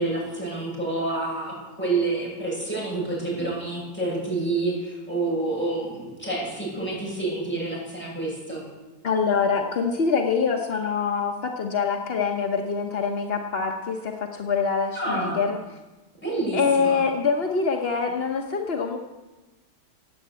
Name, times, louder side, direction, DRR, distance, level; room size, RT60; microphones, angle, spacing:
voice 1, 0.0-8.6 14.9-15.4 16.1-17.0, right 2 dB, 5° left, -5 dB, 6.9 m, -28 dB
voice 2, 9.0-15.6 16.5-19.0, left 5 dB, 50° left, 2 dB, 0.7 m, -25 dB
17.5 x 8.6 x 8.1 m, 1.2 s
omnidirectional pair, 2.2 m